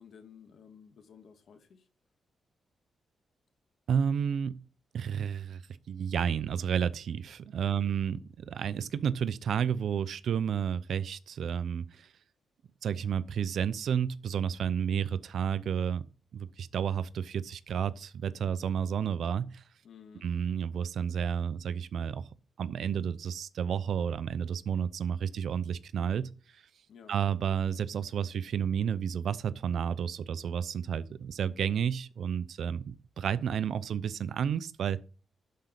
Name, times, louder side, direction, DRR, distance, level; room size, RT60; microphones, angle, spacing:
voice 1, 0.0-1.9 7.7-7.9 19.8-20.3 26.9-27.2, left 7 dB, 65° left, 1.9 m, -54 dB
voice 2, 3.9-4.6 4.9-5.6 5.9-12.1 12.8-16.0 16.3-19.6 20.2-22.3 22.6-26.6 27.1-35.0, right 8 dB, 70° right, 0.6 m, -31 dB
12.0 x 5.2 x 6.0 m
cardioid pair, 110°, 0 cm